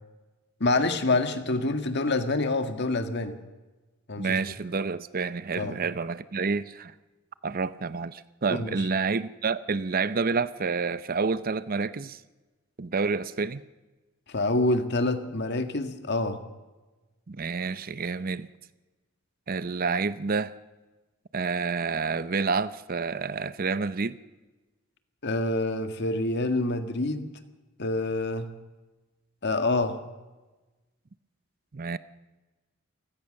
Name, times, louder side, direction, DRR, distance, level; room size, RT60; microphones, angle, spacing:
voice 1, 0.6-3.4 4.1-4.4 5.6-5.8 8.5-8.8 14.3-16.4 25.2-27.3 27.8-28.5 29.4-30.0, left 2 dB, 55° left, 1.8 m, -26 dB
voice 2, 4.2-6.9 7.4-12.2 12.8-13.6 17.3-18.5 19.5-20.5 21.3-24.2 31.7-32.0, right 4 dB, 45° right, 0.6 m, -29 dB
29.0 x 16.5 x 6.5 m
head